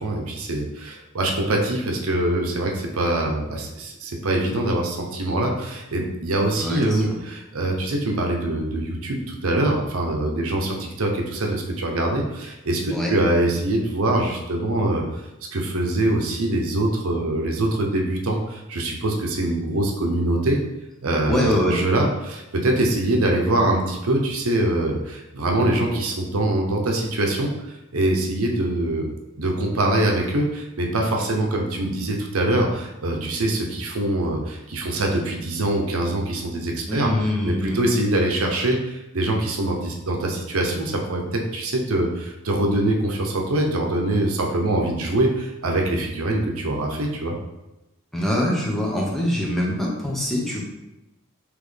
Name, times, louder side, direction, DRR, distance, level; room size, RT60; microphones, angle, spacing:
voice 1, 0.0-15.2 15.5-20.6 21.0-29.1 29.4-47.4, right 1 dB, 85° right, 1 dB, 0.7 m, -23 dB
voice 2, 6.5-7.2 12.9-13.1 21.3-21.8 36.9-37.8 48.1-50.6, left 1 dB, ahead, -3 dB, 0.7 m, -24 dB
4.0 x 3.2 x 3.3 m, 0.97 s
head